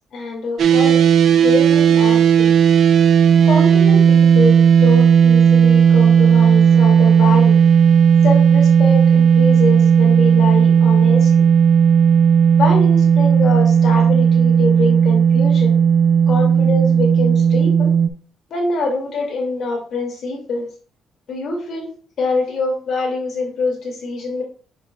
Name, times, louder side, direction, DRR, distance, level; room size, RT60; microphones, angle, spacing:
voice 1, 0.1-2.5 3.4-7.6 8.2-11.5 12.6-15.8 16.3-17.9 18.5-20.7 21.3-24.4, left 3 dB, 55° left, 0 dB, 2.2 m, -24 dB
sound 1, 0.6-18.1, right 7 dB, 60° right, 0.6 m, -13 dB
7.0 x 6.8 x 2.3 m, 0.43 s
cardioid pair, 120°, 0 cm